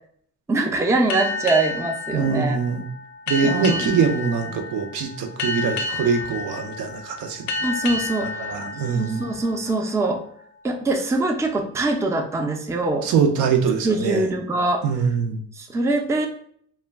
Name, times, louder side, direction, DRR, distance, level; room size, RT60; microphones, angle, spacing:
voice 1, 0.5-2.6 3.4-3.9 7.6-8.5 8.9-10.2 10.6-13.1 13.8-14.8 15.6-16.3, right 2 dB, 10° right, 4 dB, 0.3 m, -23 dB
sound 1, 1.1-10.3, left 3 dB, 65° left, 0.4 m, -31 dB
voice 2, 2.1-2.8 3.3-7.5 8.2-9.3 13.0-14.2 14.8-15.4, right 6 dB, 85° right, 4 dB, 0.5 m, -23 dB
2.2 x 2.1 x 3.3 m, 0.62 s
cardioid pair, 90°, 30 cm